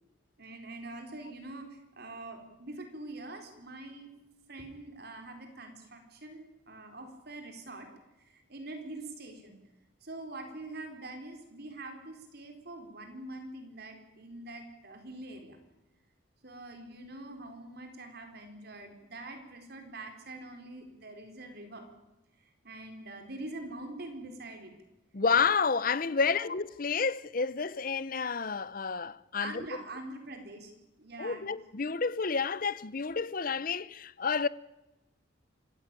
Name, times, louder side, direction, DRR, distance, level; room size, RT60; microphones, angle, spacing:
voice 1, 0.4-4.1 4.5-7.9 8.2-9.6 10.0-15.6 16.4-21.8 22.4-24.7 26.2-26.5 29.4-30.7 31.0-31.5, right 2 dB, 50° right, 4.3 m, -44 dB
voice 2, 25.1-29.6 31.2-34.5, left 5 dB, 45° left, 0.7 m, -30 dB
25.5 x 15.5 x 9.0 m
head